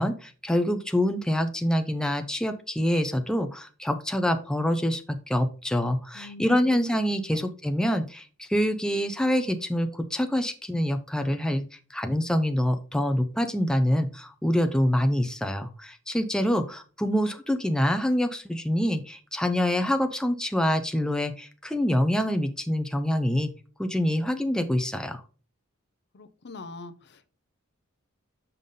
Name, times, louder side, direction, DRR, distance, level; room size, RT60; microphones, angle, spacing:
voice 1, 0.0-11.6 11.9-23.5 23.8-25.2, equal, 5° left, 7 dB, 0.6 m, -26 dB
voice 2, 6.1-6.8 7.3-7.5 26.1-27.3, left 3 dB, 55° left, 12 dB, 0.6 m, -43 dB
6.9 x 5.4 x 3.8 m, 0.37 s
head